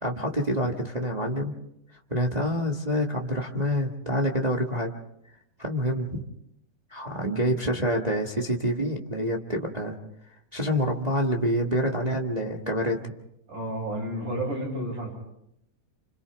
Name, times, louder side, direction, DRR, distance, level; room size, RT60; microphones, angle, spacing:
voice 1, 0.0-1.5 2.1-4.9 5.6-6.2 6.9-10.0 10.5-13.1, equal, 30° right, 1 dB, 0.8 m, -27 dB
voice 2, 13.5-15.1, right 1 dB, 80° right, -1 dB, 9.1 m, -31 dB
29.5 x 27.5 x 3.5 m, 0.79 s
omnidirectional pair, 3.6 m